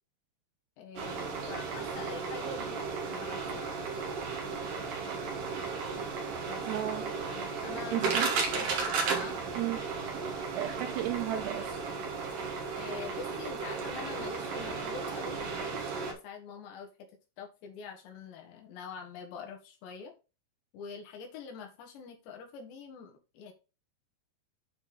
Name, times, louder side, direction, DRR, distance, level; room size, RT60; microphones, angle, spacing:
voice 1, 0.8-3.8 5.6-5.8 6.5-6.6 7.3-8.8 9.1-9.4 12.8-16.9 17.4-20.1 20.7-23.5, left 6 dB, 75° left, 3.7 m, -45 dB
sound 1, 1.0-16.1, right 4 dB, 55° right, 2.9 m, -34 dB
voice 2, 6.6-7.1 7.9-8.7 9.6-9.8 10.5-11.8, right 13 dB, 80° right, 2.5 m, -34 dB
9.0 x 4.2 x 4.2 m
omnidirectional pair, 5.2 m